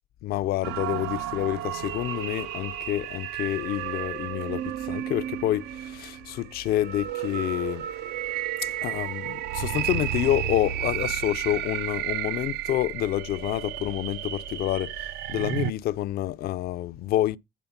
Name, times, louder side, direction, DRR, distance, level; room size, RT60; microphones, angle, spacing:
voice 1, 0.2-7.9 8.6-17.4, left 13 dB, 65° left, 0.4 m, -28 dB
sound 1, 0.6-15.7, right 12 dB, 80° right, 0.4 m, -32 dB
9.2 x 3.5 x 5.7 m
cardioid pair, 110°, 17 cm